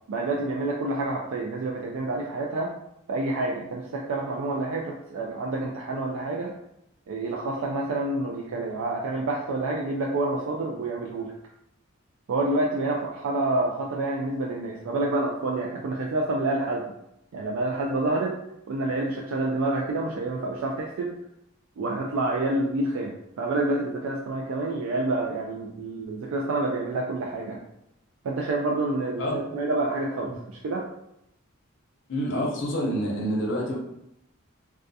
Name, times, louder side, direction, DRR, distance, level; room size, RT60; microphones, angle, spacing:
voice 1, 0.1-2.7 3.1-6.5 7.1-11.3 12.3-16.8 17.3-18.4 18.7-21.2 21.8-27.6 28.2-30.9, right 2 dB, 75° right, -2 dB, 0.3 m, -28 dB
voice 2, 32.1-33.8, equal, 60° left, -1 dB, 0.6 m, -27 dB
2.3 x 2.3 x 2.6 m, 0.80 s
head